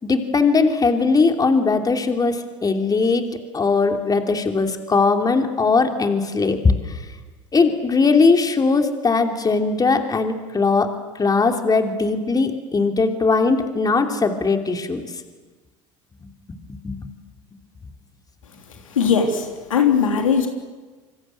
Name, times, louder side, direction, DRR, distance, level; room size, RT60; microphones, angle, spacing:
voice 1, 0.0-3.3 3.5-6.7 7.5-10.9 11.2-15.0 16.8-16.9, left 4 dB, 25° left, 5 dB, 3.1 m, -19 dB
voice 2, 18.9-20.5, left 6 dB, 85° left, 4 dB, 3.4 m, -19 dB
27.5 x 24.5 x 7.9 m, 1.3 s
hypercardioid pair, 75°, 16 cm